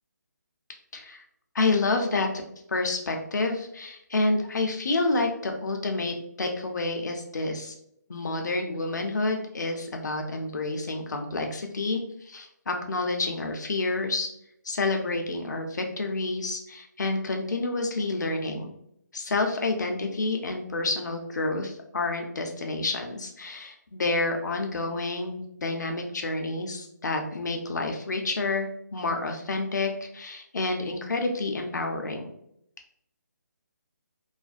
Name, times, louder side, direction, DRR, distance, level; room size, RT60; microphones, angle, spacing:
voice 1, 0.9-1.2 1.5-2.4 2.7-7.7 8.1-14.3 14.6-18.7 19.1-32.2, left 3 dB, 70° left, 3 dB, 0.6 m, -29 dB
2.4 x 2.1 x 2.4 m, 0.75 s
hypercardioid pair, 165°, 10 cm